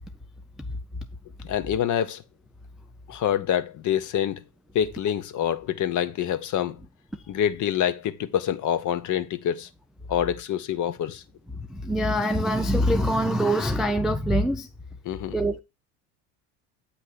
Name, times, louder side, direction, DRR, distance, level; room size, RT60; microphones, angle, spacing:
voice 1, 1.4-2.2 3.1-4.4 4.7-6.8 7.3-9.7 10.1-11.2 15.0-15.3, left 10 dB, 40° left, 0.8 m, -26 dB
voice 2, 11.7-14.7 15.3-15.6, equal, ahead, 0.3 m, -24 dB
8.4 x 3.0 x 5.7 m
hypercardioid pair, 85°, 45 cm